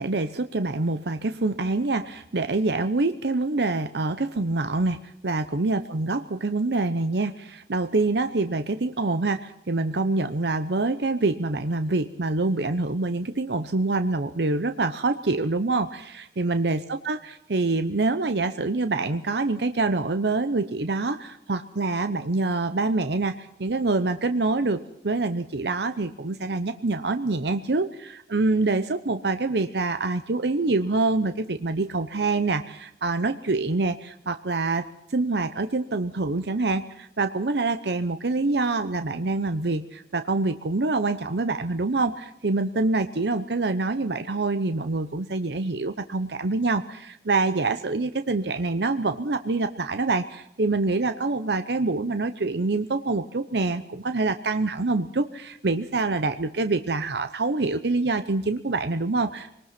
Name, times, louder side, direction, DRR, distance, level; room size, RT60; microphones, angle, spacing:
voice 1, 0.0-34.8 35.1-59.6, right 3 dB, 65° right, 10 dB, 0.8 m, -26 dB
24.0 x 19.5 x 6.0 m, 0.79 s
head